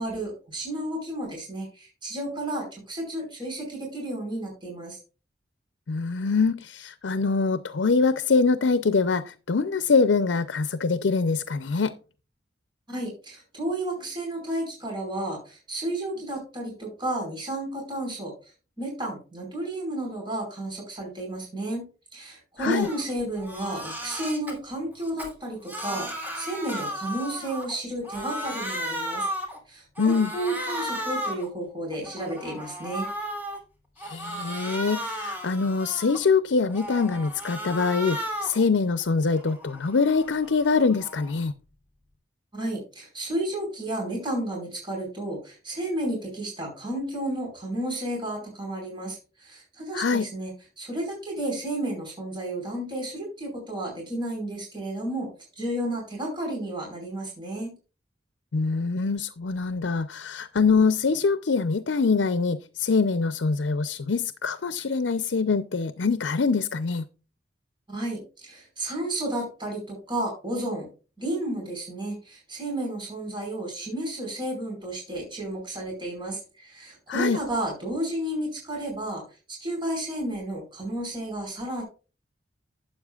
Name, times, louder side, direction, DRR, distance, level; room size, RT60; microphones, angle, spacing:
voice 1, 0.0-5.0 12.9-18.3 18.8-21.9 22.1-29.3 29.7-33.1 42.5-57.7 67.9-70.9 71.2-79.2 79.5-81.8, right 1 dB, 25° right, 4.9 m, -32 dB
voice 2, 5.9-11.9 22.6-22.9 30.0-30.3 34.0-41.5 49.9-50.3 58.5-67.1 77.1-77.4, left 4 dB, 85° left, 0.6 m, -24 dB
Crying sobbing, 22.8-23.0 23.4-24.5 25.0-27.8 28.0-29.6 30.0-31.5 31.9-33.6 34.0-36.3 36.7-38.6 39.0-41.4, equal, 10° right, 3.0 m, -35 dB
12.5 x 8.6 x 2.4 m
head